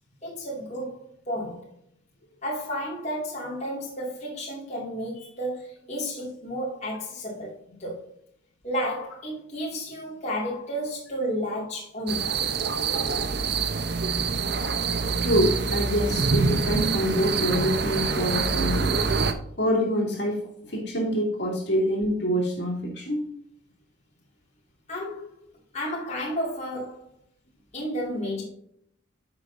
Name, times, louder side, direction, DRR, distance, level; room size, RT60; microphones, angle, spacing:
voice 1, 0.2-1.7 2.4-8.1 8.6-12.4 24.9-25.3 25.7-27.1 27.7-28.4, equal, 35° left, 2.2 m, -32 dB
sound 1, 12.1-19.3, right 4 dB, 55° right, 0.7 m, -26 dB
voice 2, 15.2-19.0 19.6-20.4 20.7-23.2, equal, 55° left, 2.5 m, -25 dB
9.7 x 6.2 x 2.6 m
head